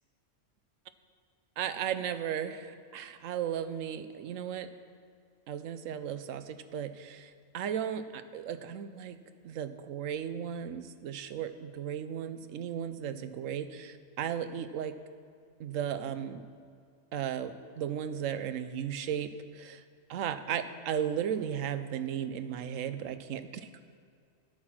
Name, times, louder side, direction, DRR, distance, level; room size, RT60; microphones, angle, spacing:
voice 1, 1.6-4.7 5.5-9.2 9.4-14.9 15.6-16.4 17.1-19.8 20.1-23.7, right 9 dB, 85° right, 11 dB, 1.0 m, -35 dB
11.5 x 8.7 x 6.0 m, 2.2 s
omnidirectional pair, 1.3 m